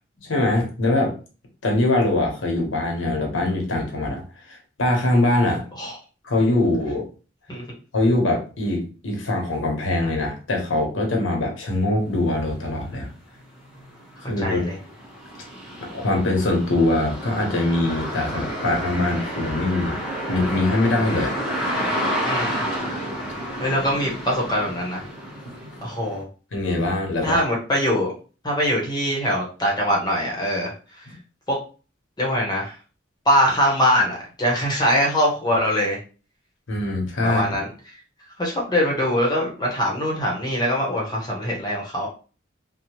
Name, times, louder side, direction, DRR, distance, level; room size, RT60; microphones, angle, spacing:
voice 1, 0.2-1.1 1.6-5.6 6.2-7.1 7.9-13.1 14.3-14.6 15.9-20.0 20.3-21.3 26.5-27.4 36.7-37.6, left 2 dB, 85° left, 1 dB, 0.9 m, -22 dB
sound 1, 12.8-12.9 13.3-26.2, equal, 5° right, 1.0 m, -30 dB
voice 2, 14.4-14.7 22.2-22.6 23.6-25.0 25.8-26.3 27.2-28.1 28.4-30.7 31.5-31.6 32.2-32.7 33.3-36.0 37.2-37.7 38.4-42.1, equal, 20° left, -2 dB, 0.8 m, -22 dB
2.7 x 2.0 x 3.0 m, 0.35 s
head